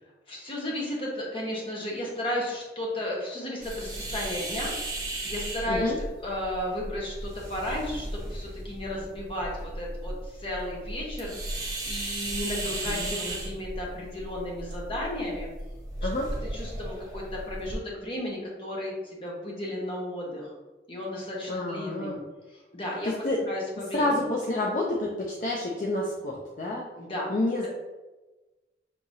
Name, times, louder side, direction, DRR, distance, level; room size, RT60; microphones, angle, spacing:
voice 1, 0.3-5.9 6.2-11.4 11.6-15.5 16.0-16.1 16.5-20.5 20.9-22.1 22.5-23.1 23.5-24.2 27.0-27.4, left 1 dB, 30° left, -3 dB, 1.1 m, -34 dB
sound 1, 3.6-17.8, right 1 dB, 20° right, 0.9 m, -36 dB
voice 2, 12.8-13.4 16.0-16.3 21.5-22.2 23.0-23.4 23.9-26.9 27.3-27.7, left 2 dB, 45° left, -3 dB, 0.5 m, -29 dB
6.1 x 2.8 x 2.7 m, 1.2 s
head